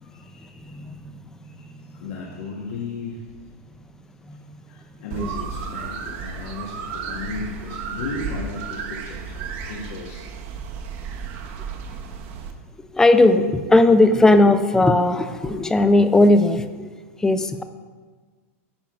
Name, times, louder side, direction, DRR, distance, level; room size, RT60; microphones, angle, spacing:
voice 1, 0.0-0.9 1.5-3.4 4.3-10.3, left 4 dB, 65° left, -1 dB, 1.4 m, -35 dB
voice 2, 0.7-1.2 4.3-4.4 5.2-5.3 12.9-16.9 17.2-17.6, left 2 dB, 5° left, 10 dB, 0.4 m, -17 dB
sound 1, 5.1-12.5, right 6 dB, 50° right, 0.9 m, -33 dB
10.5 x 4.5 x 5.0 m, 1.4 s
supercardioid pair, 145°, 8 cm